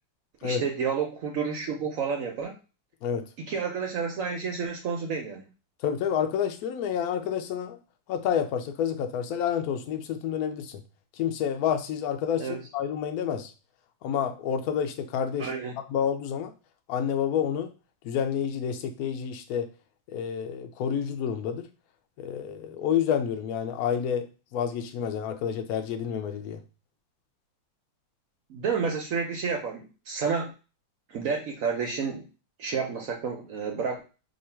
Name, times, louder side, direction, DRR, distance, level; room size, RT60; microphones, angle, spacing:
voice 1, 0.4-2.6 3.5-5.4 12.4-12.6 15.4-15.8 28.5-30.5 31.1-32.3 32.6-34.0, right 5 dB, 70° right, 2 dB, 0.7 m, -30 dB
voice 2, 5.8-7.8 8.1-10.8 11.2-12.5 12.7-13.5 14.0-15.5 15.9-16.5 16.9-17.7 18.0-19.7 20.1-21.7 22.2-24.3 24.5-26.6, left 8 dB, 75° left, 6 dB, 0.8 m, -29 dB
3.0 x 2.5 x 4.3 m, 0.33 s
omnidirectional pair, 2.1 m